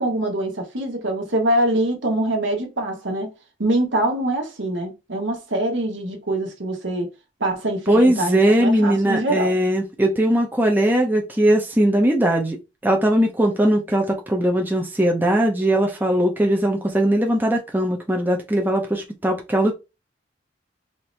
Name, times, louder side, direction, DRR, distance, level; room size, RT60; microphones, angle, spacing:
voice 1, 0.0-3.3 3.6-7.1 7.4-9.5, right 1 dB, 75° right, 1.3 m, -24 dB
voice 2, 7.9-12.6 12.8-19.7, right 1 dB, 10° right, 0.6 m, -19 dB
4.3 x 2.7 x 3.2 m
head